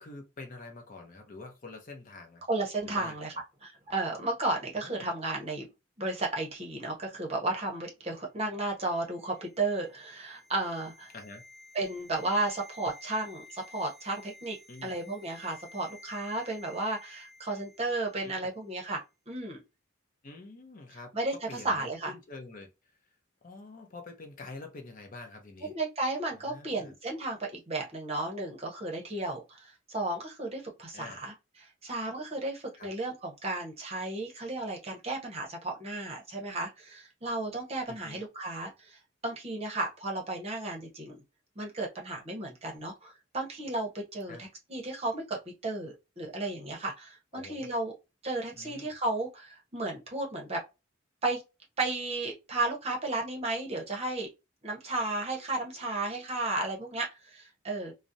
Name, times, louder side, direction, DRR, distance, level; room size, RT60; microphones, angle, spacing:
voice 1, 0.0-2.4 2.8-3.4 4.7-5.1 11.1-11.4 14.7-14.9 18.2-18.5 20.2-22.9 23.4-25.7 26.3-26.9 30.9-31.2 32.8-32.9 37.9-38.2 44.3-44.5 47.3-47.7 48.5-48.9, left 3 dB, 40° left, 0.6 m, -47 dB
voice 2, 2.5-3.3 3.6-5.7 6.0-11.1 11.7-19.0 19.3-19.6 21.1-22.1 25.7-31.3 31.6-39.0 39.2-41.2 41.6-47.9 48.2-50.6 51.2-51.4 51.8-54.3 54.6-57.9, right 2 dB, 30° right, 0.7 m, -34 dB
Hearing Test, 8.9-18.1 18.4-18.5, left 2 dB, 5° left, 0.9 m, -53 dB
2.4 x 2.0 x 2.6 m
head